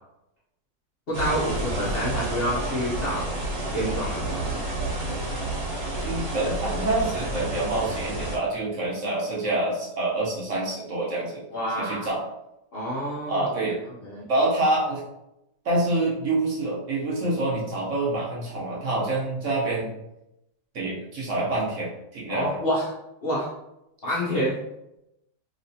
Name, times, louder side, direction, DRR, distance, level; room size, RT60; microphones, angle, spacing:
voice 1, 1.1-3.4 3.7-4.4 11.5-12.1 12.7-13.5 14.0-14.2 22.3-22.8 23.2-23.5 24.0-24.6, equal, 55° left, -7 dB, 0.6 m, -28 dB
sound 1, 1.1-8.4, right 2 dB, 70° right, 1.5 m, -30 dB
voice 2, 6.0-11.4 11.8-12.2 13.3-13.8 14.3-15.0 15.6-19.9 20.7-22.5, right 2 dB, 55° right, -5 dB, 1.0 m, -26 dB
3.0 x 2.9 x 2.7 m, 0.86 s
omnidirectional pair, 1.7 m